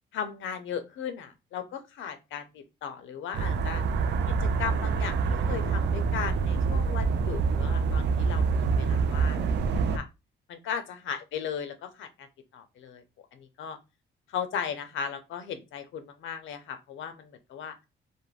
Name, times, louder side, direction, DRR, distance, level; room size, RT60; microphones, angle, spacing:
voice 1, 0.1-3.8 4.3-10.1 10.5-12.3 12.5-13.0 13.3-13.8 14.3-17.8, left 7 dB, 75° left, 8 dB, 0.6 m, -37 dB
sound 1, 3.3-10.0, right 5 dB, 60° right, 0.4 m, -26 dB
2.4 x 2.1 x 3.1 m, 0.25 s
cardioid pair, 90°, 20 cm